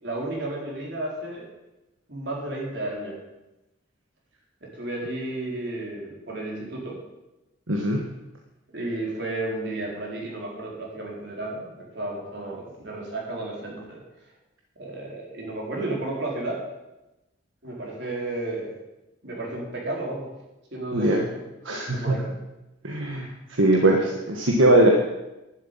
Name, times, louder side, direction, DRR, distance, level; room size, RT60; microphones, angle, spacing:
voice 1, 0.0-1.5 2.1-3.2 4.6-7.0 8.7-14.0 14.8-16.6 17.6-18.7 19.2-20.3 20.7-21.5 21.9-22.4 23.9-24.0, right 2 dB, 55° right, -3 dB, 4.3 m, -32 dB
voice 2, 7.7-8.0 20.9-21.2 21.7-22.2 22.8-23.3 23.6-24.0 24.4-24.9, right 1 dB, 75° right, 1 dB, 1.5 m, -20 dB
11.5 x 7.7 x 9.1 m, 0.98 s
head